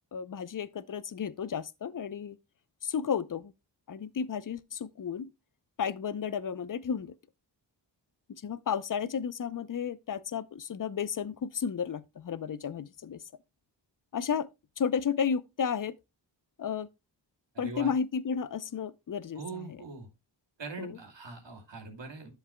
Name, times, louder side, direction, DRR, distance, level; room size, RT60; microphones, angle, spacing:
voice 1, 0.1-2.4 2.8-3.5 3.9-5.3 5.8-7.2 8.3-13.2 14.1-14.5 14.8-16.0 16.6-16.9 17.6-19.8 20.8-20.9, left 7 dB, 45° left, 0.6 m, -33 dB
voice 2, 17.5-17.9 19.3-20.1 20.6-22.3, right 4 dB, 70° right, 2.5 m, -42 dB
11.0 x 7.3 x 2.2 m
cardioid pair, 50°, 46 cm